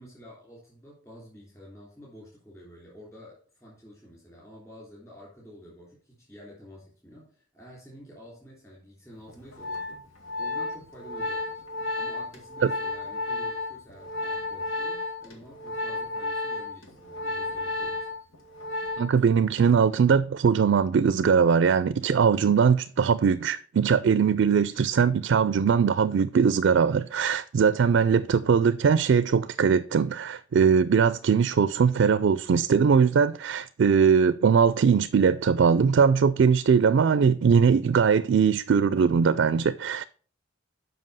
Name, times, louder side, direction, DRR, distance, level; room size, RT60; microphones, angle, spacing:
voice 1, 0.0-11.6 11.9-18.1, equal, 15° left, 3.1 m, -49 dB
Organ, 9.3-19.3 19.6-19.9, left 2 dB, 90° left, 1.9 m, -33 dB
voice 2, 19.0-40.0, right 6 dB, 65° right, 0.4 m, -21 dB
7.6 x 5.5 x 5.5 m
head